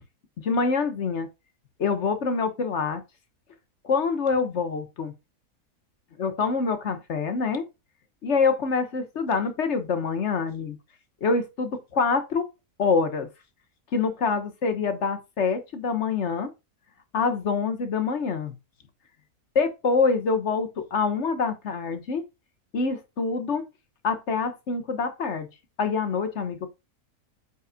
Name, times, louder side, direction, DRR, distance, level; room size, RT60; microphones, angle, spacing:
voice 1, 0.4-1.3 1.8-3.0 3.8-5.1 6.2-7.6 8.2-10.8 11.2-12.4 12.8-13.3 13.9-16.5 17.1-18.5 19.5-22.2 22.7-23.6 24.0-25.5 25.8-26.7, left 4 dB, 50° left, 1.4 m, -25 dB
8.0 x 5.5 x 2.3 m
omnidirectional pair, 1.6 m